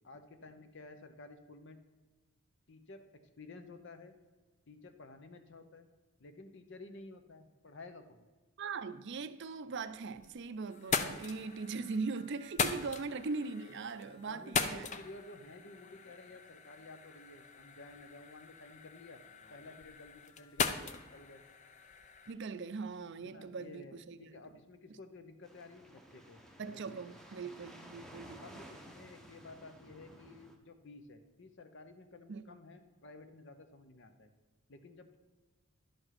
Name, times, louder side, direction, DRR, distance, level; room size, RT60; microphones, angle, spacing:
voice 1, 0.0-1.9 2.7-4.1 4.7-5.9 6.2-8.2 10.9-11.2 12.8-12.9 14.2-19.2 19.5-21.4 23.2-27.2 28.4-34.3 34.7-35.2, left 2 dB, 55° left, 0.8 m, -53 dB
voice 2, 8.6-14.9 22.3-24.3 26.6-28.6 32.3-32.6, right 4 dB, 50° right, 0.5 m, -40 dB
sound 1, 9.9-10.4 10.7-22.3, left 5 dB, 30° left, 0.5 m, -40 dB
sound 2, 25.4-30.6, equal, ahead, 0.8 m, -54 dB
11.0 x 5.2 x 5.9 m
head